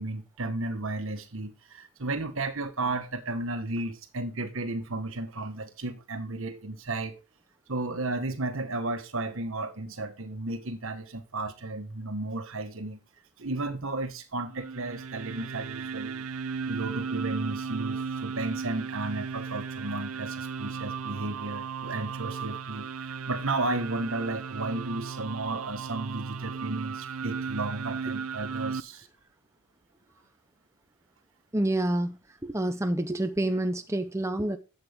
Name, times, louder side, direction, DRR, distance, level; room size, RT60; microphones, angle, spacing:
voice 1, 0.0-7.2 7.7-13.0 13.4-16.3 16.7-29.1, right 2 dB, 60° right, 1.4 m, -33 dB
sound 1, 14.5-28.8, right 5 dB, 75° right, 0.7 m, -35 dB
voice 2, 31.5-32.2 32.4-34.6, right 1 dB, 15° right, 0.6 m, -28 dB
12.0 x 7.9 x 3.6 m
head